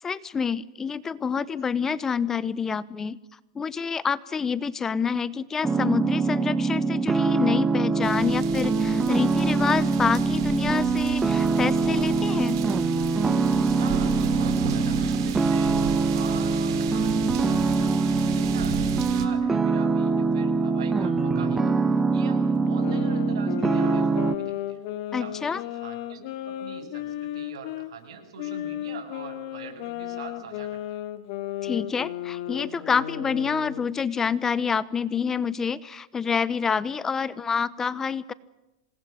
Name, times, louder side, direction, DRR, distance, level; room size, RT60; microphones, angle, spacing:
voice 1, 0.0-3.2 3.5-12.6 25.1-25.6 31.6-38.3, left 6 dB, 15° left, 19 dB, 0.8 m, -27 dB
sound 1, 5.6-24.4, right 4 dB, 10° right, 1.3 m, -23 dB
sound 2, 8.0-19.3, right 8 dB, 55° right, 4.5 m, -35 dB
voice 2, 13.7-21.8 22.1-24.8 25.1-31.0, right 6 dB, 75° right, 7 dB, 7.6 m, -44 dB
sound 3, 22.7-27.9 28.4-34.0, left 12 dB, 50° left, 2.5 m, -34 dB
27.0 x 20.5 x 9.4 m, 1.0 s
supercardioid pair, 140°, 3 cm